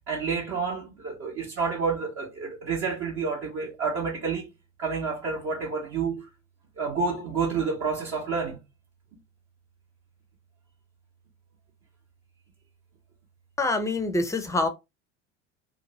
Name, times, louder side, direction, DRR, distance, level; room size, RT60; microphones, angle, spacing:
voice 1, 0.1-4.5 4.8-6.3 6.8-8.6, right 5 dB, 40° right, 0.9 m, -29 dB
voice 2, 13.6-14.7, left 2 dB, 10° left, 0.6 m, -25 dB
2.5 x 2.5 x 2.9 m
figure-of-eight pair, 70°, 37 cm